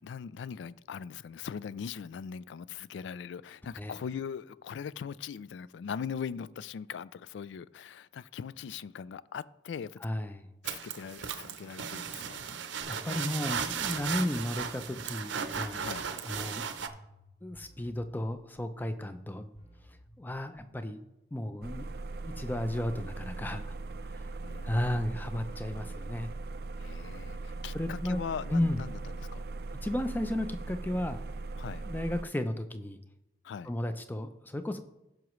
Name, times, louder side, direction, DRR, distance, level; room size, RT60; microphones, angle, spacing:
voice 1, 0.0-10.0 10.6-12.4 15.8-16.1 24.4-25.1 26.8-29.4 31.6-31.9 33.4-33.7, left 7 dB, 80° left, 0.3 m, -40 dB
voice 2, 10.0-10.4 12.9-15.8 16.2-16.6 17.4-19.4 20.2-21.0 21.3-21.9 22.2-23.6 24.1-24.3 24.6-26.3 27.7-28.2 28.5-28.8 29.8-31.2 31.8-33.0 33.7-34.8, left 1 dB, 10° left, 0.5 m, -33 dB
sound 1, 10.6-16.9, right 7 dB, 85° right, 0.7 m, -36 dB
sound 2, 12.8-20.8, equal, 40° left, 3.4 m, -56 dB
sound 3, 21.6-32.2, right 3 dB, 55° right, 0.4 m, -40 dB
15.5 x 6.1 x 3.1 m
head